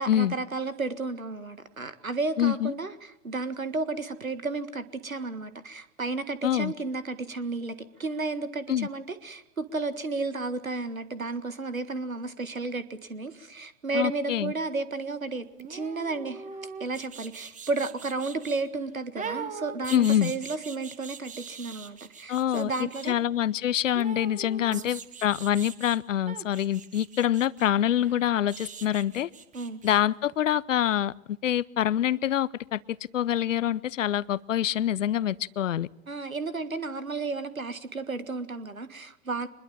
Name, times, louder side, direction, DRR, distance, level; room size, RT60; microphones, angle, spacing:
voice 1, 0.0-16.5 16.8-23.2 24.6-24.9 29.5-29.8 36.1-39.5, right 3 dB, 90° right, 13 dB, 1.8 m, -33 dB
voice 2, 2.4-2.7 6.4-6.7 8.7-8.9 13.9-14.5 19.9-20.3 22.3-22.7 23.1-29.3 29.8-35.9, left 11 dB, 70° left, 22 dB, 0.8 m, -26 dB
sound 1, 15.6-18.6 19.2-23.1 23.9-26.0 26.3-30.0 30.3-30.4, right 6 dB, 20° right, 1.9 m, -42 dB
24.5 x 21.5 x 7.2 m, 0.81 s
figure-of-eight pair, 100°, 40 cm